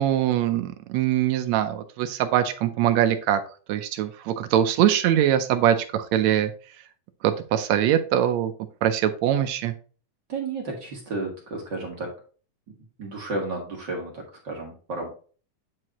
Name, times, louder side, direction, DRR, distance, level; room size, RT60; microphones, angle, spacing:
voice 1, 0.0-3.4 3.7-6.5 7.2-8.5 8.8-9.7, right 11 dB, 80° right, 9 dB, 1.6 m, -22 dB
voice 2, 10.3-12.1 13.0-15.1, right 2 dB, 50° right, 0 dB, 1.4 m, -32 dB
8.6 x 4.7 x 2.9 m, 0.39 s
omnidirectional pair, 3.7 m